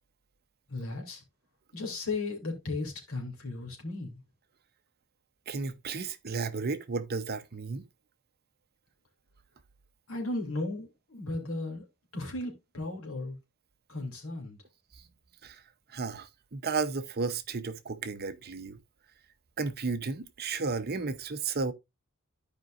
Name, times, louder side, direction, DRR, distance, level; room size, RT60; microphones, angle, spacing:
voice 1, 0.7-1.2 1.7-4.2 10.1-11.8 12.1-13.4 13.9-14.6, left 2 dB, 65° left, 2.9 m, -35 dB
voice 2, 5.5-7.9 15.4-15.6 15.9-18.8 19.6-21.7, right 4 dB, 45° right, 0.7 m, -33 dB
14.0 x 5.1 x 2.5 m
head